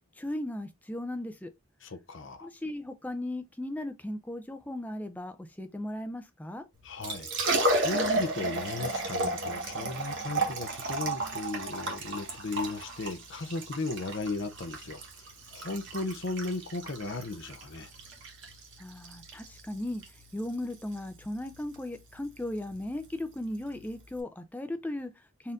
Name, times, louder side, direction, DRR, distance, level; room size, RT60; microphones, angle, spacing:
voice 1, 0.2-1.5 2.4-6.6 18.8-25.5, left 1 dB, 5° left, 0.4 m, -37 dB
voice 2, 1.8-2.5 6.8-15.0 15.5-17.9, left 3 dB, 55° left, 0.6 m, -36 dB
Liquid, 6.8-24.2, right 2 dB, 55° right, 1.1 m, -34 dB
4.2 x 2.6 x 3.5 m
head